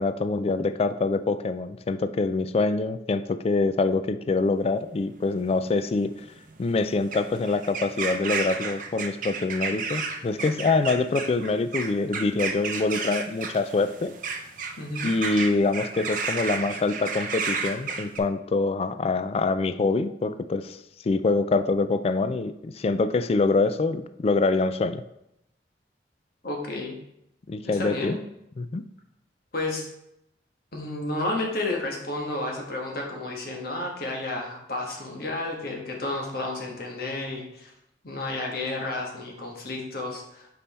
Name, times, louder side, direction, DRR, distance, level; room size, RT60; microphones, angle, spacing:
voice 1, 0.0-6.1 6.6-14.1 15.0-25.0 27.5-28.2 28.6-28.8, left 3 dB, 35° left, 11 dB, 0.3 m, -25 dB
sound 1, 4.8-18.2, right 5 dB, 50° right, 0.6 m, -33 dB
voice 2, 14.8-15.1 26.4-27.0 27.6-28.1 29.5-29.9 30.7-37.7 38.0-40.5, left 2 dB, 55° left, 0 dB, 1.3 m, -31 dB
5.4 x 4.3 x 4.2 m, 0.81 s
head